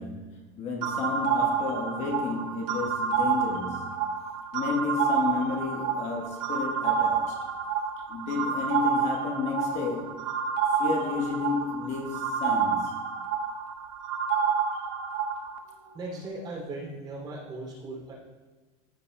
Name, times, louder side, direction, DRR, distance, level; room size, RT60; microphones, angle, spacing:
voice 1, 0.0-4.1 4.5-7.4 8.1-10.3 10.7-13.1 15.8-16.2 17.9-18.0, left 5 dB, 45° left, 1.2 m, -32 dB
sound 1, 0.8-15.6, right 6 dB, 65° right, 0.9 m, -29 dB
voice 2, 15.9-18.1, right 2 dB, 25° right, 2.7 m, -38 dB
14.0 x 7.1 x 2.2 m
supercardioid pair, 140°, 17 cm